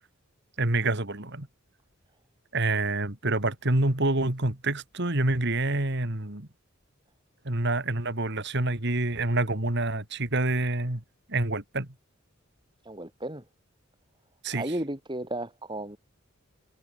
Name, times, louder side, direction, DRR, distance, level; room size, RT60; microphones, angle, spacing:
voice 1, 0.6-1.5 2.5-6.5 7.4-11.0 11.3-11.9 14.4-14.7, right 2 dB, 55° right, 2.9 m, -27 dB
voice 2, 12.8-13.4 14.5-16.0, right 1 dB, 25° right, 6.6 m, -34 dB
head